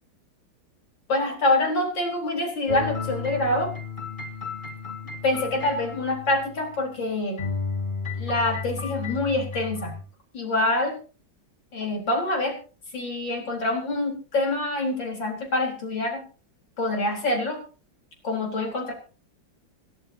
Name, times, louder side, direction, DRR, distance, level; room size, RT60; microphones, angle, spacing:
voice 1, 1.1-3.7 5.2-7.4 8.2-9.9 10.3-11.0 11.7-12.6 12.9-16.2 16.8-17.6 18.2-18.9, left 2 dB, 70° left, 1 dB, 4.8 m, -26 dB
sound 1, 2.7-7.0 7.4-10.0, left 4 dB, 25° left, 2.2 m, -33 dB
27.0 x 11.0 x 2.8 m, 0.36 s
omnidirectional pair, 2.1 m